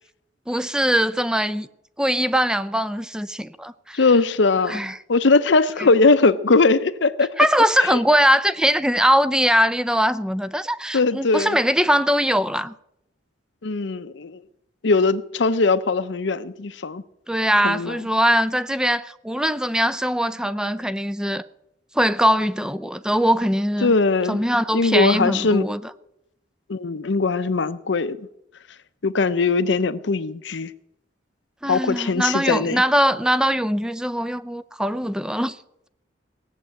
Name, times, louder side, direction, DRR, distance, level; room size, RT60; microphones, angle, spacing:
voice 1, 0.5-1.7 2.0-4.0 4.7-5.0 7.4-12.7 17.3-21.4 22.0-23.9 24.3-25.8 31.6-35.6, equal, 5° right, 0.4 m, -21 dB
voice 2, 3.9-4.8 5.1-7.3 7.9-8.0 10.9-11.6 13.6-14.4 14.8-17.0 17.6-18.0 23.8-24.4 24.7-25.7 26.7-28.3 29.0-30.7 31.7-32.8, left 3 dB, 70° left, 0.7 m, -20 dB
18.0 x 7.5 x 8.1 m
head